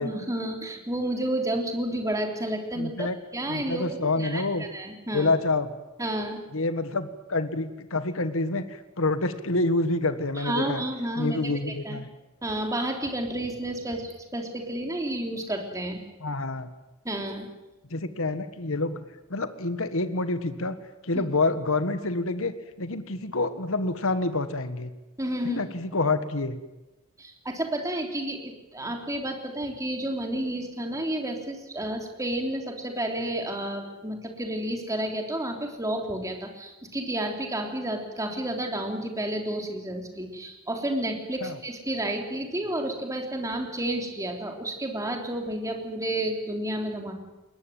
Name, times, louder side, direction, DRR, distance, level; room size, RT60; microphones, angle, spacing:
voice 1, 0.0-5.3 6.0-6.4 10.4-12.0 12.4-16.0 17.0-17.5 21.1-21.2 25.2-25.6 27.2-47.1, right 1 dB, 15° right, 3 dB, 3.4 m, -31 dB
voice 2, 2.7-3.2 3.5-4.7 5.1-5.7 6.5-10.8 11.1-12.1 16.2-16.7 17.9-19.0 19.3-20.7 21.0-24.9 25.4-26.6 41.4-41.6, left 2 dB, 65° left, 11 dB, 1.7 m, -27 dB
22.0 x 20.0 x 9.4 m, 1.0 s
head